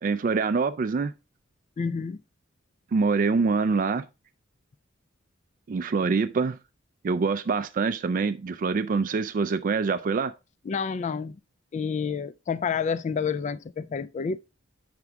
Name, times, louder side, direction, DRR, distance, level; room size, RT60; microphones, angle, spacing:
voice 1, 0.0-1.1 2.9-4.0 5.7-6.6 7.0-10.3, right 4 dB, 45° right, 0.4 m, -25 dB
voice 2, 1.8-2.2 10.7-11.4 11.7-14.4, left 6 dB, 35° left, 0.3 m, -29 dB
8.1 x 6.0 x 3.4 m
head